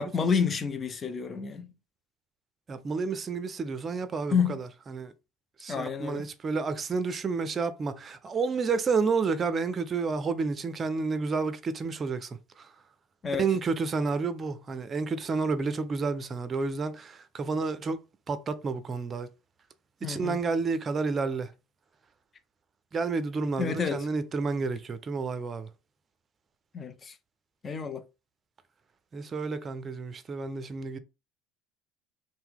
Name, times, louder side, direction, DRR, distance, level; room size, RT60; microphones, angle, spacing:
voice 1, 0.0-1.7 4.3-4.6 5.7-6.3 13.2-13.5 20.0-20.4 23.6-24.1 26.7-27.1 27.6-28.0, left 6 dB, 30° left, 0.5 m, -29 dB
voice 2, 2.7-5.1 5.6-12.7 13.3-18.0 18.3-19.3 20.0-21.5 22.9-25.7 29.1-31.0, right 4 dB, 35° right, 0.5 m, -30 dB
2.8 x 2.1 x 3.6 m
hypercardioid pair, 75°, 0 cm